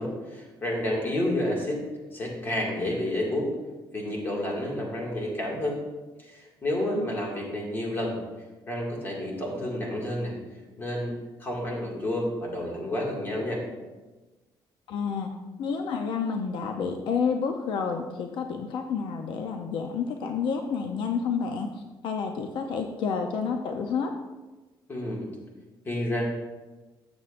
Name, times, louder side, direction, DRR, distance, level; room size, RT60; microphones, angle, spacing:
voice 1, 0.0-1.8 2.1-3.5 3.9-5.8 6.2-8.2 8.7-10.3 10.8-11.1 11.4-13.6 24.9-25.3 25.9-26.2, left 1 dB, 25° left, -2 dB, 2.1 m, -30 dB
voice 2, 6.9-7.5 14.9-15.3 15.6-24.1, left 6 dB, 70° left, 4 dB, 0.7 m, -30 dB
13.0 x 7.9 x 2.6 m, 1.2 s
cardioid pair, 175°, 9 cm